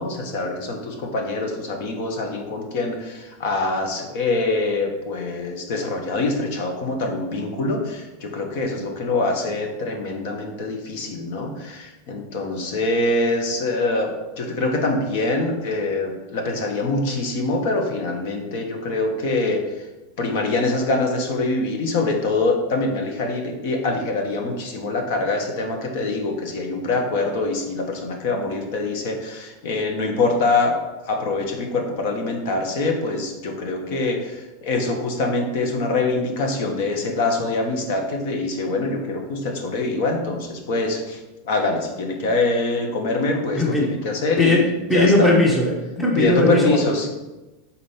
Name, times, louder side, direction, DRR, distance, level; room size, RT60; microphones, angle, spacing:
voice 1, 0.0-14.1 14.4-19.6 20.2-30.7 31.1-41.2 41.4-44.6 44.9-45.3 46.2-47.1, left 3 dB, 55° left, 3 dB, 1.2 m, -24 dB
voice 2, 43.5-43.9 44.4-44.6 44.9-46.9, left 2 dB, 5° left, -2 dB, 0.9 m, -18 dB
5.0 x 4.2 x 5.7 m, 1.1 s
supercardioid pair, 160°, 0 cm